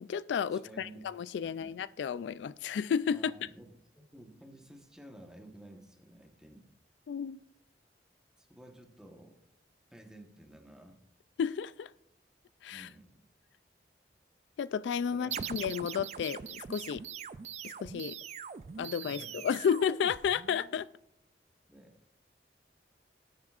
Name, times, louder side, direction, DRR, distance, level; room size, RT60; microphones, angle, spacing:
voice 1, 0.0-3.5 7.1-7.4 11.4-11.9 12.6-12.9 14.6-17.0 17.6-18.1 18.8-20.9, left 7 dB, 80° left, 17 dB, 0.3 m, -32 dB
voice 2, 0.5-1.1 1.6-1.8 3.1-3.7 4.0-6.7 8.4-9.4 9.9-11.0 12.7-13.3 15.1-15.6 16.8-16.9 19.0-19.4 21.7-22.0, right 1 dB, 5° right, 3 dB, 1.1 m, -53 dB
sound 1, 15.3-20.7, right 7 dB, 35° right, 0.3 m, -42 dB
18.0 x 9.5 x 2.4 m, 0.75 s
head